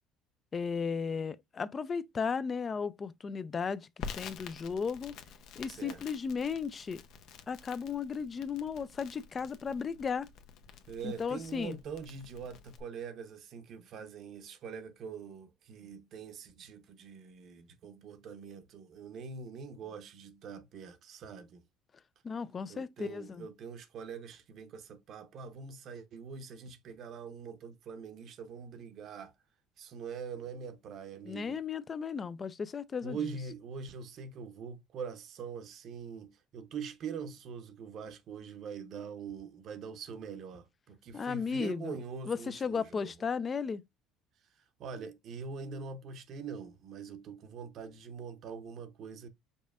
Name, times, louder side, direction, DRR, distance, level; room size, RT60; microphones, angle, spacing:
voice 1, 0.5-3.9 4.1-5.1 5.6-7.0 7.5-10.3 11.0-11.8 22.2-23.5 31.3-33.3 41.1-42.0 42.3-43.8, left 5 dB, 30° left, 0.4 m, -35 dB
Crackle, 4.0-12.8, left 6 dB, 65° left, 0.8 m, -48 dB
voice 2, 5.7-6.0 10.9-21.6 22.7-29.3 29.8-31.6 33.0-43.1 44.8-49.3, right 6 dB, 50° right, 0.7 m, -43 dB
5.3 x 4.0 x 2.4 m
cardioid pair, 125°, 0 cm